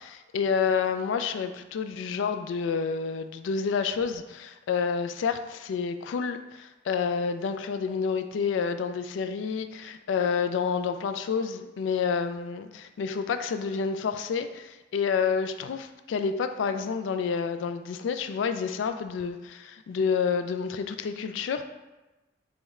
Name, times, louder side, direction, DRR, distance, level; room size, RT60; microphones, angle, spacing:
voice 1, 0.0-21.6, left 6 dB, 80° left, 8 dB, 0.3 m, -29 dB
3.6 x 3.1 x 3.1 m, 1.1 s
head